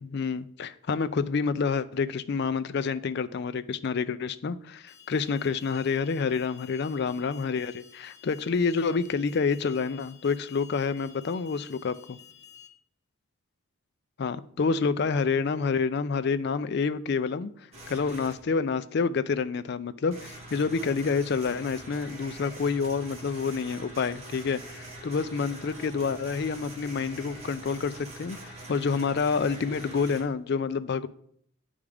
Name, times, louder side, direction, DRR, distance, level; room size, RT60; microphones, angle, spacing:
voice 1, 0.0-12.2 14.2-17.5 17.9-31.1, left 5 dB, 55° left, 0.4 m, -28 dB
Alarm, 4.9-12.7, left 9 dB, 15° left, 0.7 m, -52 dB
sound 1, 17.7-18.3 20.1-30.2, right 1 dB, 30° right, 1.4 m, -44 dB
9.5 x 3.6 x 4.9 m
head